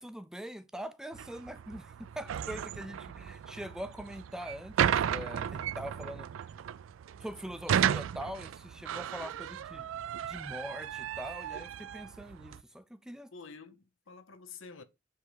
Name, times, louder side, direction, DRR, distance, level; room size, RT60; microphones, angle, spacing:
voice 1, 0.0-6.6 7.2-9.9 10.2-13.3, equal, 5° right, 0.4 m, -43 dB
sound 1, 1.1-12.6, right 9 dB, 80° right, 0.3 m, -34 dB
voice 2, 9.1-9.5 13.3-14.8, left 4 dB, 75° left, 0.7 m, -49 dB
7.4 x 3.4 x 4.6 m
head